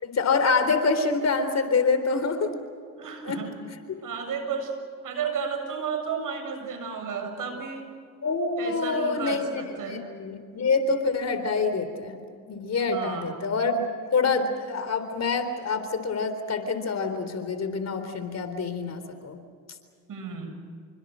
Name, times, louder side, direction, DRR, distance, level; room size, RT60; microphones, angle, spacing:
voice 1, 0.0-2.5 3.2-3.4 3.9-4.0 8.2-9.6 9.9-12.2 12.5-13.8 14.1-19.4, left 4 dB, 45° left, 9 dB, 3.9 m, -26 dB
voice 2, 3.0-3.5 4.0-4.7 5.0-7.9 8.6-10.1 12.9-13.4 20.1-20.5, right 6 dB, 55° right, 6 dB, 7.3 m, -33 dB
27.5 x 25.5 x 6.4 m, 2.2 s
supercardioid pair, 70°, 37 cm